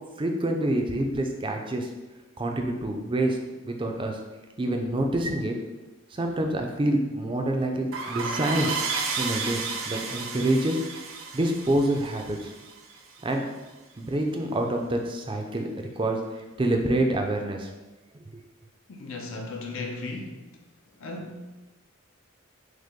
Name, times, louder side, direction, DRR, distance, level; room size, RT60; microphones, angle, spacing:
voice 1, 0.2-1.9 2.4-3.4 3.6-4.2 4.6-5.5 6.1-8.8 9.2-10.8 11.3-12.5 13.2-13.4 14.0-17.7, right 1 dB, 25° right, 3 dB, 0.4 m, -27 dB
sound 1, 7.9-13.2, right 4 dB, 70° right, 0.5 m, -32 dB
voice 2, 18.9-20.4 21.0-21.6, left 2 dB, 75° left, 1 dB, 0.6 m, -36 dB
6.3 x 2.1 x 3.6 m, 1.1 s
head